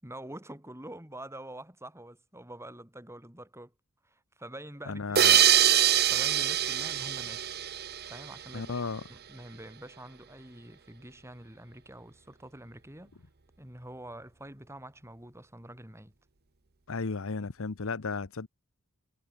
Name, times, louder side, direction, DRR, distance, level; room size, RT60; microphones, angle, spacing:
voice 1, 0.0-3.7 4.0-5.4 6.1-7.5 7.9-13.1 13.6-16.1, right 1 dB, 10° right, 6.9 m, -46 dB
voice 2, 4.9-5.4 8.5-9.0 16.9-18.5, left 4 dB, 65° left, 0.9 m, -34 dB
sound 1, 5.2-8.5, right 11 dB, 45° right, 1.1 m, -24 dB
head